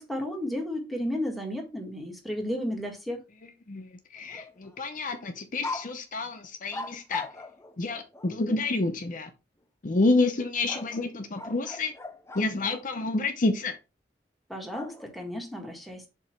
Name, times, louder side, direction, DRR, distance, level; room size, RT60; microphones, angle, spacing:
voice 1, 0.0-3.2 14.5-16.1, left 1 dB, ahead, 1.8 m, -33 dB
voice 2, 3.7-7.3 7.8-9.3 9.8-11.9 12.3-13.7, left 2 dB, 50° left, 0.7 m, -28 dB
sound 1, 4.2-4.8 5.1-5.2 5.6-5.9 6.7-8.4 10.7-12.8 14.7-15.3, left 3 dB, 15° left, 0.7 m, -39 dB
7.2 x 2.9 x 5.7 m
head